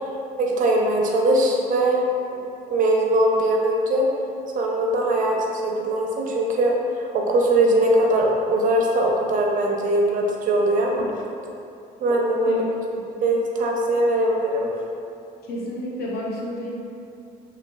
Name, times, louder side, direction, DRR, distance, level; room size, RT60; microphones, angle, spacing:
voice 1, 0.4-2.0 2.7-4.1 4.5-11.1 12.0-12.6 13.2-14.7, right 1 dB, 50° right, -1 dB, 0.4 m, -21 dB
voice 2, 15.4-16.7, left 1 dB, 65° left, -4 dB, 0.6 m, -30 dB
3.1 x 2.2 x 2.2 m, 2.6 s
cardioid pair, 110°, 17 cm